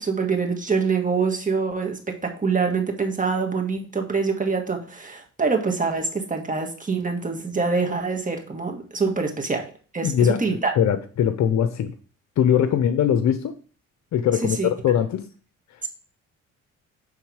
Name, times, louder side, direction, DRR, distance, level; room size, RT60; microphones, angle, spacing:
voice 1, 0.0-9.6 9.9-10.7 14.6-14.7 15.8-15.9, right 4 dB, 25° right, 1.7 m, -25 dB
voice 2, 10.0-10.4 10.7-11.9 12.4-13.6 14.1-15.3, left 9 dB, 65° left, 0.7 m, -21 dB
9.3 x 3.6 x 4.8 m
cardioid pair, 90°, 30 cm